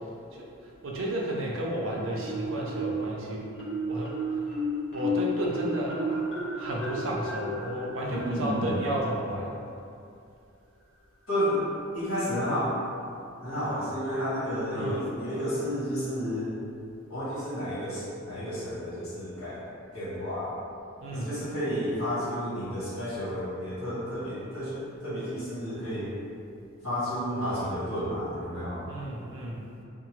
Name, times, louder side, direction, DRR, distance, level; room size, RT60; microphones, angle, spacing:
voice 1, 0.8-3.5 3.9-4.5 4.9-6.3 6.6-9.6 14.7-15.0 21.0-21.4 28.9-29.6, right 1 dB, 70° right, -3 dB, 0.5 m, -32 dB
Marimba xylophone, 2.2-3.1 3.5-9.1, equal, 55° left, 0.7 m, -33 dB
voice 2, 8.2-8.7 11.3-11.6 11.9-12.7 13.4-16.5 17.1-19.6 19.9-20.5 21.1-24.7 25.0-26.1 26.8-28.8, equal, 75° left, -11 dB, 1.3 m, -31 dB
2.8 x 2.1 x 3.0 m, 2.6 s
head